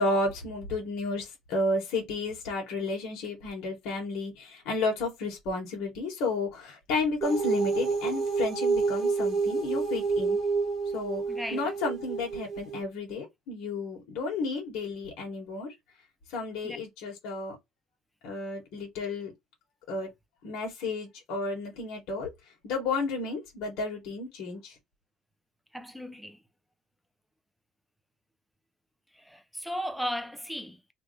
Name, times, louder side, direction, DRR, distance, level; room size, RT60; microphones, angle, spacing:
voice 1, 0.0-10.4 10.9-11.2 11.5-15.7 16.3-17.6 18.2-19.3 19.9-20.1 20.4-22.3 22.6-24.7, left 3 dB, 70° left, 1.8 m, -32 dB
sound 1, 7.2-12.8, right 4 dB, 40° right, 1.1 m, -28 dB
voice 2, 11.3-11.7 16.6-16.8 25.7-26.4 29.3-30.9, equal, ahead, 0.5 m, -36 dB
3.3 x 2.7 x 3.2 m
cardioid pair, 145°, 0 cm